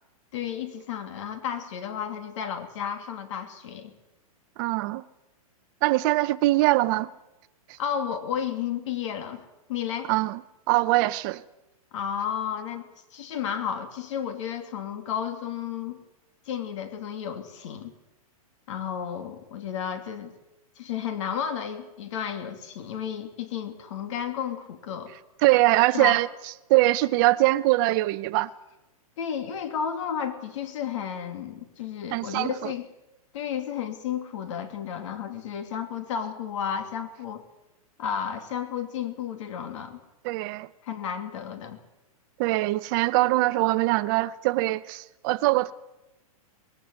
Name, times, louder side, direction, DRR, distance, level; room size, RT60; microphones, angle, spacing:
voice 1, 0.3-3.9 7.8-10.1 11.9-12.8 13.1-16.0 16.5-17.9 18.7-20.3 20.8-25.1 25.9-26.2 29.2-32.9 33.3-37.4 38.0-40.0 40.8-41.8, left 8 dB, 55° left, 2.7 m, -32 dB
voice 2, 4.6-5.0 5.8-7.1 10.1-10.4 10.7-11.4 25.4-26.3 26.7-28.5 32.1-32.7 40.2-40.7 42.4-45.7, right 18 dB, 35° right, 0.8 m, -22 dB
20.5 x 16.0 x 9.6 m
hypercardioid pair, 155°, 19 cm